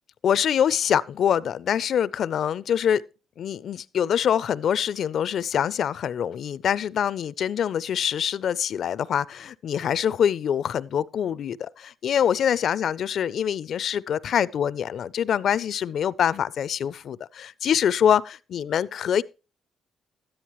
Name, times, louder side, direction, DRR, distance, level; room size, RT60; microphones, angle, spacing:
voice 1, 0.2-3.0 3.4-19.2, left 9 dB, 65° left, 0.4 m, -25 dB
13.0 x 10.0 x 3.0 m
cardioid pair, 90°, 0 cm